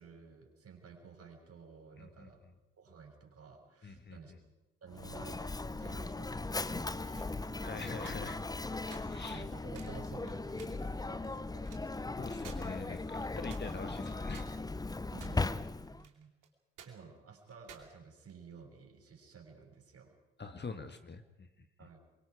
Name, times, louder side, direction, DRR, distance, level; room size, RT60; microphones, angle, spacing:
voice 1, 0.0-2.4 2.8-4.3 4.8-7.8 9.1-11.7 15.1-16.3 16.9-20.2 21.8-22.0, right 6 dB, 45° right, 2 dB, 6.9 m, -53 dB
voice 2, 2.0-2.3 3.8-4.4 7.6-8.4 8.7-9.4 12.2-14.4 20.4-21.5, left 4 dB, 30° left, 7 dB, 1.6 m, -45 dB
Mechanisms, 4.9-16.1, left 3 dB, 10° left, 0.7 m, -38 dB
sound 1, 7.2-7.4 7.9-8.6 8.9-9.0 9.4-9.5 9.7-10.0 10.3-10.8 11.2-12.0 12.4-12.6 12.9-13.0 13.5-13.9 14.3-15.6 15.8-16.5 16.8-16.9 17.5-18.6, right 9 dB, 60° right, 3.1 m, -54 dB
27.0 x 23.5 x 4.9 m, 0.99 s
figure-of-eight pair, 45°, 35 cm